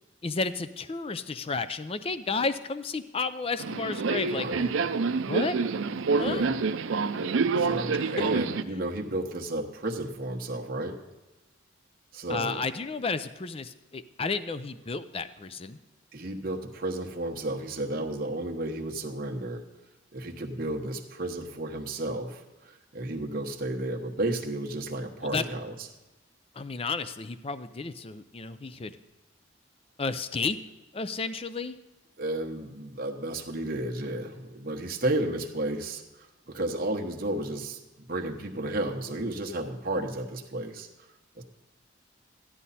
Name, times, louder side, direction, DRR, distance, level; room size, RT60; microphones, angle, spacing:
voice 1, 0.2-4.5 5.2-5.6 6.2-6.4 8.0-8.1 12.3-15.8 25.3-25.4 26.6-29.0 30.0-30.6 30.9-31.8, left 4 dB, 30° left, 12 dB, 0.5 m, -32 dB
Subway metro underground, 3.6-8.6, right 4 dB, 80° right, 0.5 m, -27 dB
voice 2, 4.3-4.7 6.0-6.5 7.6-11.0 12.1-12.6 16.1-19.6 20.1-25.9 32.2-40.9 41.3-41.4, right 1 dB, 45° right, 2 dB, 1.2 m, -32 dB
13.5 x 11.0 x 4.2 m, 1.1 s
head